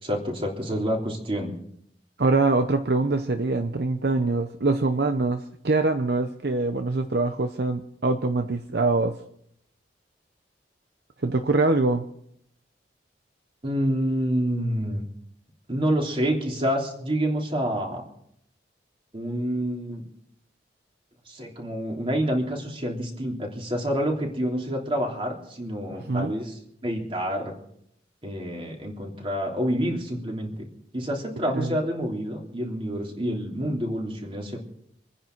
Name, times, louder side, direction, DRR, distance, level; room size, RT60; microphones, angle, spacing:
voice 1, 0.0-1.5 13.6-15.0 15.7-18.0 19.1-20.0 21.3-27.5 28.2-30.7 30.9-34.6, equal, 30° right, 0 dB, 3.3 m, -28 dB
voice 2, 2.2-9.2 11.2-12.0 26.1-26.3 31.5-31.8, right 3 dB, 60° right, 7 dB, 0.8 m, -24 dB
26.0 x 10.0 x 4.6 m, 0.69 s
head